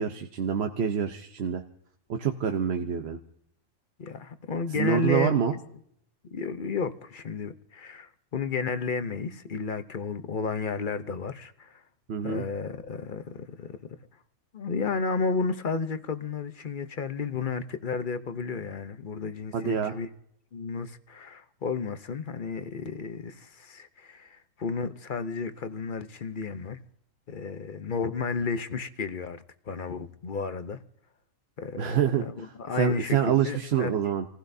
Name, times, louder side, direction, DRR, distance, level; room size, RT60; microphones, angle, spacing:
voice 1, 0.0-1.6 2.1-3.2 4.7-5.6 12.1-12.4 19.5-20.0 31.8-34.3, right 8 dB, 55° right, 1.0 m, -26 dB
voice 2, 4.0-5.4 6.3-11.8 12.2-14.0 14.5-20.1 20.5-26.8 27.3-30.8 31.6-33.9, left 4 dB, 45° left, 0.8 m, -32 dB
28.0 x 16.0 x 2.7 m
omnidirectional pair, 1.4 m